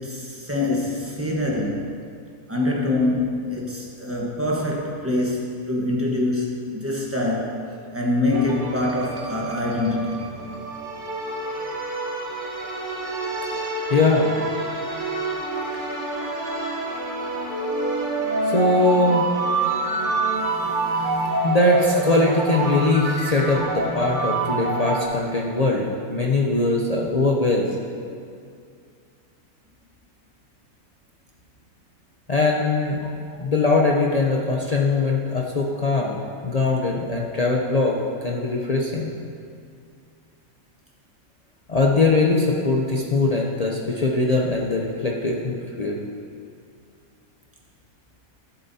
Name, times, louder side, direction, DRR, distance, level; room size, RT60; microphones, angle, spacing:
voice 1, 0.0-1.9 2.5-10.4, left 2 dB, 10° right, -3 dB, 1.0 m, -25 dB
sound 1, 8.3-25.1, right 2 dB, 40° right, 1.2 m, -27 dB
voice 2, 13.9-14.3 18.5-19.3 21.0-21.1 21.4-27.7 32.3-33.1 33.4-39.1 41.7-46.0, left 3 dB, 50° left, -2 dB, 0.5 m, -21 dB
12.5 x 7.7 x 2.7 m, 2.3 s
omnidirectional pair, 1.5 m